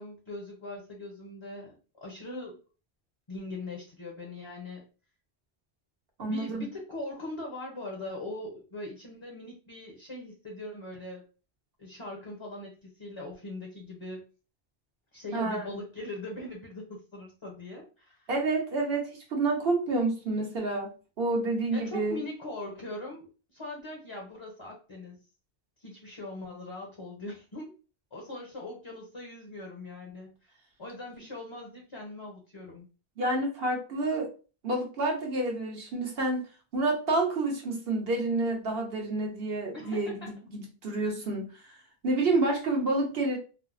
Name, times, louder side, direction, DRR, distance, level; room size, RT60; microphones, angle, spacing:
voice 1, 0.0-2.6 3.3-4.8 6.3-11.2 11.8-14.2 15.1-18.3 21.7-25.2 25.8-27.7 28.1-30.5 30.8-32.8 39.7-40.3, left 2 dB, 35° left, 0 dB, 0.6 m, -41 dB
voice 2, 6.2-6.6 15.3-15.8 18.3-20.9 21.2-22.2 33.2-34.3 34.6-36.4 36.7-41.7 42.0-43.4, right 2 dB, 70° right, 1 dB, 1.1 m, -29 dB
3.4 x 2.0 x 2.4 m, 0.35 s
omnidirectional pair, 1.1 m